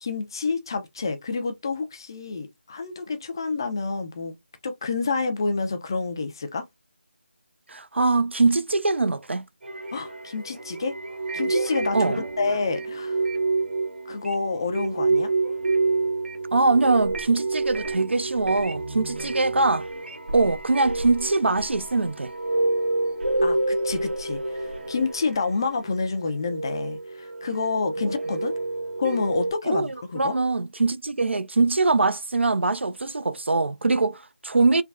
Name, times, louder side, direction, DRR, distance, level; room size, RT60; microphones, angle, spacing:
voice 1, 0.0-4.3 4.6-6.6 9.9-10.9 11.3-13.2 14.1-15.3 23.4-28.6 29.0-30.3, left 4 dB, 20° left, 0.3 m, -28 dB
voice 2, 7.7-9.5 11.9-12.2 16.5-19.9 20.3-22.3 29.7-34.8, right 3 dB, 80° right, 0.4 m, -22 dB
sound 1, 9.6-25.9 26.3-29.5, right 3 dB, 60° right, 0.9 m, -28 dB
3.3 x 2.2 x 2.3 m
figure-of-eight pair, 165°, 6 cm